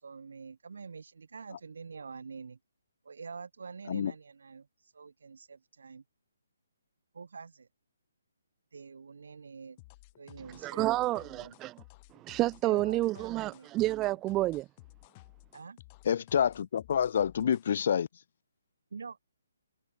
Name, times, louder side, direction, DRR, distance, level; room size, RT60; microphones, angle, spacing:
voice 1, 0.0-2.6 3.0-6.0 7.1-7.7 8.7-9.8 10.2-11.6 12.6-13.7 15.5-15.8 18.9-19.2, right 5 dB, 70° right, 3.9 m, -46 dB
sound 1, 9.8-17.7, left 23 dB, 30° left, 3.5 m, -55 dB
voice 2, 10.6-11.7 12.1-14.7, right 17 dB, 20° right, 0.5 m, -29 dB
voice 3, 16.1-18.1, left 8 dB, 50° left, 0.5 m, -27 dB
hypercardioid pair, 145°, 0 cm